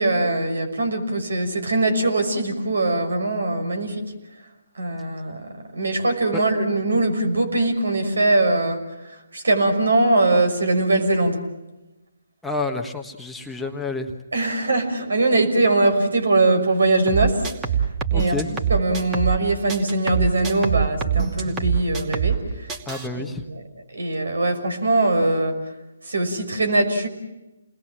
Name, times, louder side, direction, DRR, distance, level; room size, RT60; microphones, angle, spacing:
voice 1, 0.0-4.0 4.8-5.4 5.7-8.8 9.3-11.4 14.3-17.5 18.1-22.4 23.2-23.6 23.9-25.6 26.1-27.1, right 2 dB, 70° right, 7 dB, 6.0 m, -21 dB
voice 2, 12.4-14.1 18.1-18.5 22.9-23.4, left 3 dB, 5° left, 2 dB, 1.4 m, -29 dB
sound 1, 17.1-19.4 19.7-22.4 22.7-23.1, right 7 dB, 20° right, 2.6 m, -24 dB
30.0 x 21.0 x 7.5 m, 1.0 s
figure-of-eight pair, 140°, 0 cm